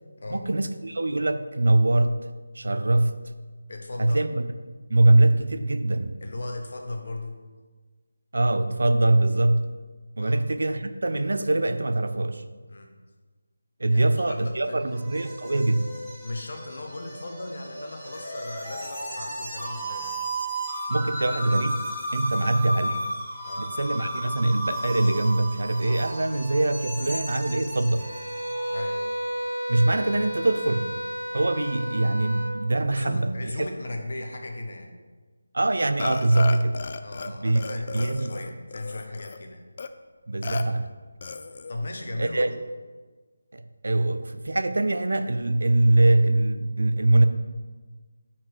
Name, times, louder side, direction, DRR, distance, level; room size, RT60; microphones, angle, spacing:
voice 1, 0.3-2.3 2.5-3.2 4.0-4.5 4.9-6.2 8.3-9.8 10.2-12.4 13.8-16.0 20.9-21.8 22.1-23.1 23.6-28.1 29.7-31.0 31.3-33.3 35.5-36.8 37.2-37.6 37.9-38.3 40.3-40.9 42.2-42.6 43.5-47.3, right 2 dB, 75° right, 10 dB, 0.5 m, -23 dB
voice 2, 3.7-4.2 6.2-7.4 10.2-10.4 12.7-12.9 13.9-15.0 16.2-20.2 22.3-22.5 23.4-23.7 28.7-29.0 32.9-35.0 37.0-39.6 41.7-42.5, left 2 dB, 55° left, 3 dB, 1.1 m, -37 dB
sound 1, 14.3-28.9, right 1 dB, ahead, 1.7 m, -34 dB
sound 2, 28.0-32.5, equal, 35° right, 1.8 m, -32 dB
Burping eructation, 36.0-37.3 37.6-39.4 39.8-39.9 40.4-40.6 41.2-41.7, left 4 dB, 40° left, 0.4 m, -34 dB
8.3 x 4.4 x 4.7 m, 1.4 s
figure-of-eight pair, 170°, 0 cm